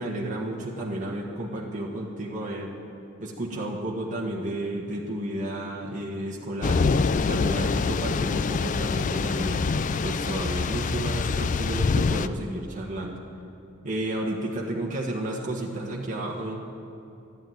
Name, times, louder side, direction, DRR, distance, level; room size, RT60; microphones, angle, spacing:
voice 1, 0.0-2.7 3.2-6.8 7.1-13.2 13.8-16.6, right 1 dB, 35° right, -3 dB, 1.4 m, -32 dB
Thunder / Rain, 6.6-12.3, left 4 dB, 35° left, 0.3 m, -25 dB
12.5 x 12.0 x 9.3 m, 2.7 s
head